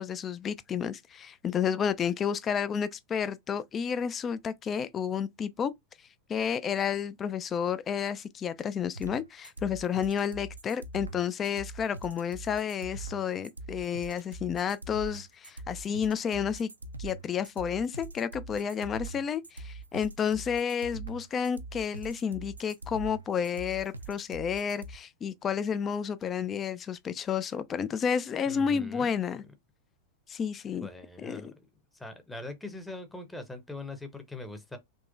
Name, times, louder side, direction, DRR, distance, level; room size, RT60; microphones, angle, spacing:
voice 1, 0.0-5.7 6.3-16.7 17.0-29.4 30.3-30.9 31.2-31.5, left 7 dB, 25° left, 0.4 m, -31 dB
sound 1, 8.9-24.9, right 3 dB, 80° right, 0.4 m, -42 dB
voice 2, 28.5-29.4 30.8-31.7 31.9-34.8, left 2 dB, 5° left, 0.8 m, -42 dB
3.6 x 2.9 x 2.5 m
figure-of-eight pair, 90°, 0 cm